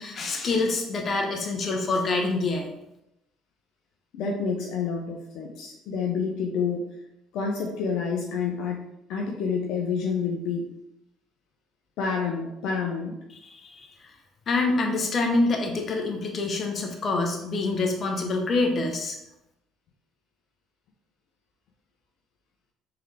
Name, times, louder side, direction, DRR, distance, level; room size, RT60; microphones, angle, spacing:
voice 1, 0.0-2.7 13.4-14.1 14.5-19.2, left 3 dB, 45° left, 2 dB, 0.9 m, -26 dB
voice 2, 4.1-6.8 7.3-8.8 9.1-10.7 12.0-13.1, left 5 dB, 70° left, 0 dB, 0.6 m, -28 dB
3.6 x 3.4 x 3.3 m, 0.85 s
supercardioid pair, 75°, 0 cm